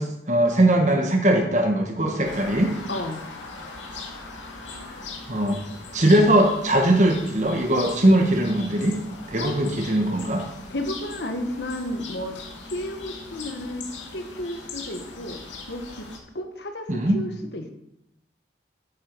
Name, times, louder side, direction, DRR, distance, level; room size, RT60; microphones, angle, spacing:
voice 1, 0.0-2.7 5.3-5.6 5.9-9.0 9.3-10.4 16.9-17.2, right 1 dB, 40° right, 3 dB, 1.3 m, -20 dB
sound 1, 2.2-16.2, left 3 dB, 85° left, 2.1 m, -40 dB
voice 2, 2.9-3.2 9.4-9.6 10.7-13.9 14.1-15.4 15.7-16.1 16.3-17.7, left 1 dB, 65° left, 5 dB, 1.4 m, -32 dB
10.5 x 8.9 x 4.7 m, 0.84 s
head